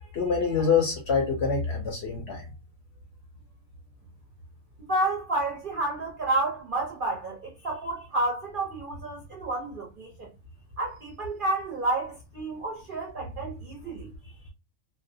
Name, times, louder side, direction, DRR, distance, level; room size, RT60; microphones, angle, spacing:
voice 1, 0.0-2.4, left 5 dB, 60° left, 0.7 m, -25 dB
voice 2, 4.8-10.3 10.8-14.1, right 2 dB, 50° right, 0.7 m, -30 dB
2.5 x 2.1 x 2.5 m
omnidirectional pair, 1.5 m